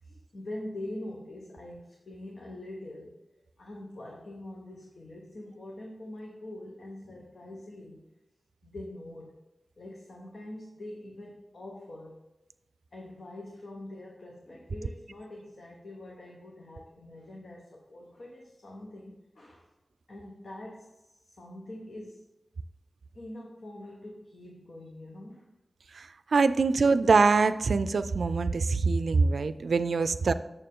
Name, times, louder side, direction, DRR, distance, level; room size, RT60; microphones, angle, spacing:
voice 1, 0.0-3.2 3.6-8.0 8.6-9.3 9.8-12.2 12.9-19.7 20.1-22.3 23.1-25.5, left 1 dB, 75° left, -2 dB, 1.2 m, -44 dB
voice 2, 25.9-30.3, right 4 dB, 85° right, 12 dB, 0.3 m, -24 dB
6.8 x 6.8 x 3.7 m, 0.96 s
wide cardioid pair, 60°, 0 cm